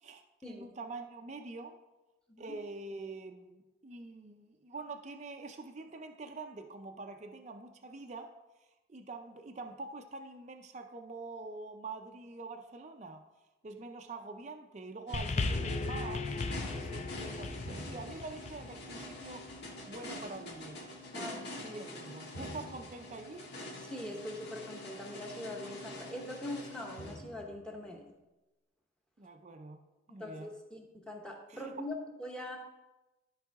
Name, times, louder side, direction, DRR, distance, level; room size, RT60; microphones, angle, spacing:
voice 1, 0.0-1.8 2.4-8.3 8.9-13.3 13.6-16.3 16.7-19.5 19.9-20.8 21.1-21.3 21.6-23.5 29.2-29.8 30.1-30.5 31.5-31.7, right 3 dB, 35° right, 4 dB, 0.5 m, -45 dB
sound 1, 15.1-27.8, left 1 dB, 55° left, 1.7 m, -45 dB
sound 2, 15.1-19.7 20.5-20.6, left 3 dB, 35° left, 0.4 m, -37 dB
voice 2, 21.1-21.8 23.8-28.1 30.1-32.6, left 1 dB, 5° left, 1 dB, 1.0 m, -42 dB
13.5 x 4.8 x 3.5 m, 1.0 s
head